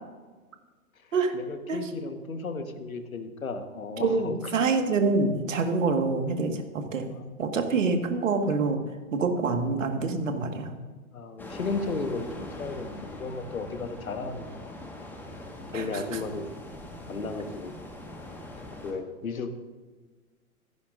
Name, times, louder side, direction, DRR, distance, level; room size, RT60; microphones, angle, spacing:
voice 1, 1.3-4.4 7.1-7.3 11.1-14.7 15.7-16.5 17.1-17.7 18.8-19.5, left 3 dB, 70° left, 8 dB, 1.5 m, -34 dB
voice 2, 4.0-7.1 7.4-8.8 9.1-10.8 15.7-16.2, right 4 dB, 60° right, 6 dB, 1.8 m, -26 dB
sound 1, 11.4-18.9, left 1 dB, 5° left, 1.5 m, -42 dB
15.5 x 15.0 x 2.6 m, 1.3 s
figure-of-eight pair, 110°, 43 cm